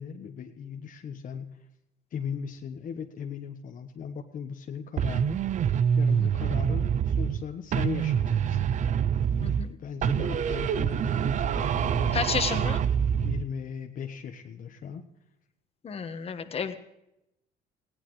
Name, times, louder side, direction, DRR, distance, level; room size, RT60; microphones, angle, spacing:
voice 1, 0.0-1.7 2.1-5.4 6.0-8.7 9.7-12.2 13.2-15.0, left 7 dB, 50° left, 4 dB, 1.2 m, -38 dB
sound 1, 5.0-7.4 7.7-9.7 10.0-13.5, right 8 dB, 45° right, 0.5 m, -26 dB
voice 2, 9.4-9.7 12.1-12.8 15.8-16.8, left 6 dB, 35° left, 8 dB, 1.4 m, -31 dB
19.5 x 17.0 x 3.2 m, 0.85 s
cardioid pair, 110°, 17 cm